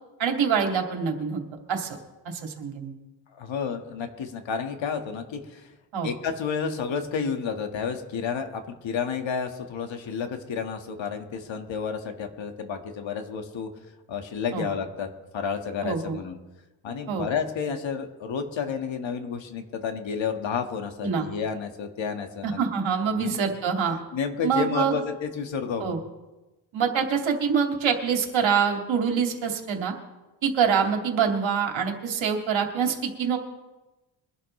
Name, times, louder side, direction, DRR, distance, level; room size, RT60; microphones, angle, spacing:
voice 1, 0.2-1.4 1.7-2.0 2.3-2.9 5.9-6.1 14.5-14.7 15.8-16.2 17.1-17.3 21.0-21.2 22.4-24.0 24.4-25.0 25.8-26.0 26.7-29.9 30.4-33.4, right 6 dB, 70° right, 3 dB, 2.4 m, -25 dB
voice 2, 3.3-5.7 6.0-13.7 14.1-15.1 15.3-16.4 16.8-22.7 23.1-23.4 24.1-26.0, left 6 dB, 65° left, 5 dB, 1.9 m, -31 dB
23.5 x 11.5 x 3.3 m, 1.1 s
cardioid pair, 90°, 48 cm